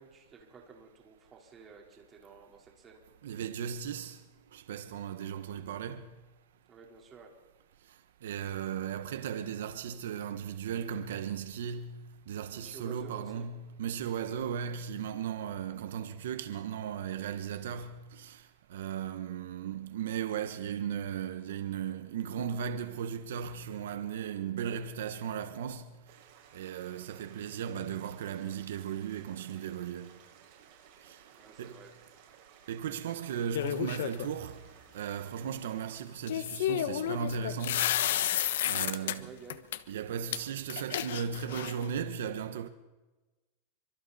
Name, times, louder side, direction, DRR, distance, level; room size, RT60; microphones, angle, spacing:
voice 1, 0.0-3.0 6.7-7.3 12.5-13.5 31.3-31.9 38.6-39.6, right 5 dB, 20° right, 4.2 m, -52 dB
voice 2, 3.2-4.2 4.5-6.1 8.2-26.0 26.5-30.2 31.0-31.2 31.6-31.8 32.7-34.6 34.9-39.3 39.9-42.7, right 8 dB, 85° right, 1.2 m, -36 dB
sound 1, 26.1-36.0, right 8 dB, 50° right, 6.1 m, -58 dB
sound 2, 33.5-34.3 36.3-39.2 39.5-39.8 40.3-40.4 40.7-41.9, left 11 dB, 80° left, 1.2 m, -31 dB
28.5 x 25.0 x 4.3 m
supercardioid pair, 155°, 0 cm